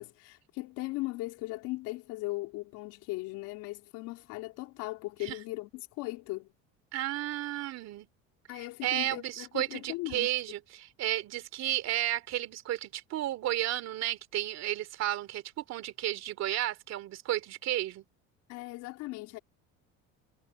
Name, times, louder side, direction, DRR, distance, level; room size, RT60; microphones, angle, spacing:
voice 1, 0.0-6.5 8.5-10.3 18.5-19.4, left 21 dB, 90° left, 3.9 m, -38 dB
voice 2, 6.9-8.1 8.5-18.0, right 13 dB, 60° right, 2.9 m, -33 dB
cardioid pair, 140°, 30 cm